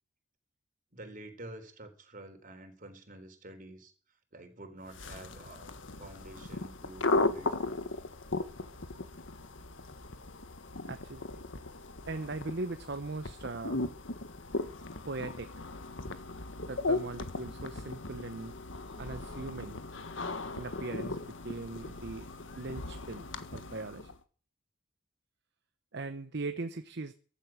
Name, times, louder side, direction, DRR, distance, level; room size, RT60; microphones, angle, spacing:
voice 1, 0.9-3.9 4.3-7.9, right 1 dB, 45° right, 6 dB, 4.0 m, -49 dB
sound 1, 4.9-24.2, left 2 dB, 75° left, 1.6 m, -37 dB
voice 2, 10.8-11.4 12.1-13.8 15.0-15.5 16.7-18.5 19.0-19.8 20.6-21.2 21.4-22.3 22.6-23.3 23.5-24.1 25.9-27.1, right 3 dB, 60° right, 9 dB, 1.0 m, -39 dB
15.0 x 11.5 x 6.3 m, 0.41 s
head